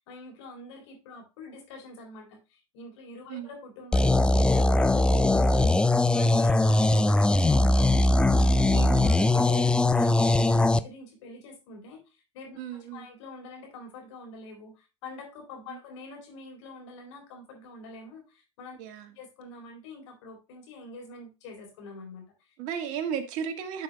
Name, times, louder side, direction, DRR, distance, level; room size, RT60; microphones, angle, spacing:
voice 1, 0.0-8.7 9.0-18.8 19.2-22.5, left 2 dB, 65° left, 3.9 m, -45 dB
sound 1, 3.9-10.8, left 2 dB, 5° left, 0.4 m, -21 dB
voice 2, 8.7-9.2 12.6-13.1 15.7-15.8 18.8-19.1 22.6-23.8, right 8 dB, 50° right, 1.6 m, -34 dB
11.5 x 6.0 x 2.2 m
hypercardioid pair, 85°, 17 cm